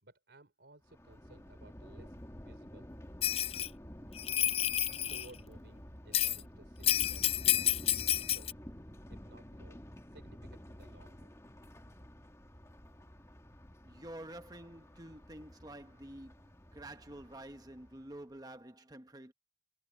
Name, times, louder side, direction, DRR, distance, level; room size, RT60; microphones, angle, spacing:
voice 1, 0.0-2.9 4.8-7.7 8.3-8.6 9.1-9.8 10.1-11.3, right 2 dB, 80° right, 3.6 m, -59 dB
Thunder, 0.9-18.2, equal, 15° left, 2.2 m, -51 dB
Bell, 3.2-3.7 4.2-5.3 6.1-6.4 6.8-8.5, left 12 dB, 35° left, 0.4 m, -30 dB
voice 2, 13.8-19.3, right 1 dB, 20° right, 1.2 m, -49 dB
head